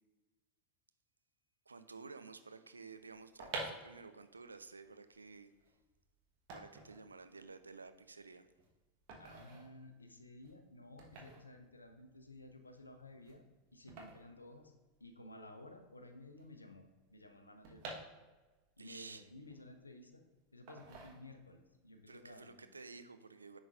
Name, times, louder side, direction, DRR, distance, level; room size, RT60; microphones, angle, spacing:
voice 1, 1.7-5.5 6.5-8.5 18.8-19.3 22.1-23.6, right 4 dB, 80° right, 10 dB, 0.4 m, -53 dB
sound 1, 3.3-15.3 15.5-15.6 15.8-18.7 19.1-20.1 20.7-21.7 22.0-22.3, right 3 dB, 50° right, 1.3 m, -50 dB
voice 2, 9.2-13.4 13.7-14.7 15.0-16.8 17.1-18.0 18.8-20.2 20.5-22.7, left 1 dB, 85° left, 6 dB, 0.7 m, -55 dB
10.5 x 4.0 x 2.5 m, 1.2 s
figure-of-eight pair, 85°, 0 cm